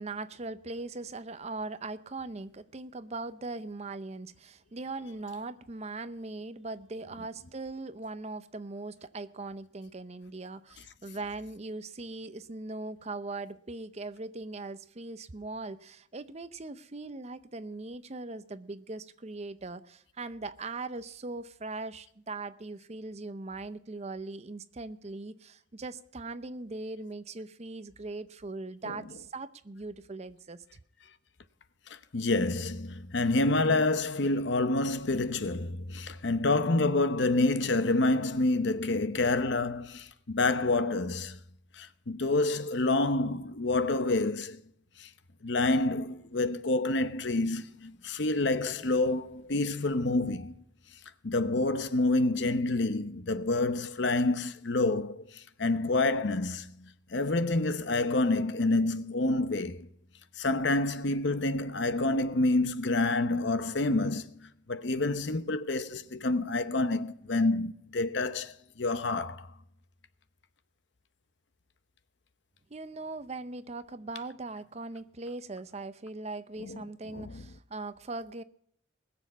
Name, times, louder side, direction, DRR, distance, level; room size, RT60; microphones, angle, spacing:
voice 1, 0.0-30.6 72.7-78.4, right 3 dB, 35° right, 0.6 m, -40 dB
voice 2, 31.9-41.4 41.7-44.6 45.0-45.1 45.4-50.6 51.2-59.9 60.4-69.5 76.6-76.8 77.1-77.4, left 2 dB, 65° left, 0.9 m, -28 dB
20.5 x 7.3 x 5.5 m
head